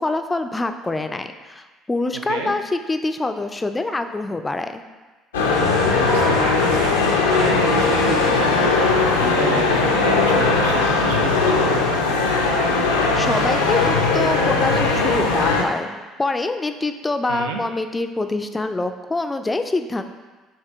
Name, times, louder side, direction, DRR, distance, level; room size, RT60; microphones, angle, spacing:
voice 1, 0.0-4.8 13.1-20.0, left 2 dB, 20° left, 8 dB, 0.3 m, -25 dB
sound 1, 5.3-15.6, left 3 dB, 85° left, 0.4 m, -19 dB
sound 2, 5.5-8.4, right 2 dB, 25° right, 0.7 m, -36 dB
voice 2, 5.9-12.0 17.3-17.6, right 4 dB, 80° right, 3 dB, 0.4 m, -30 dB
4.8 x 2.8 x 3.4 m, 1.3 s
hypercardioid pair, 60°, 0 cm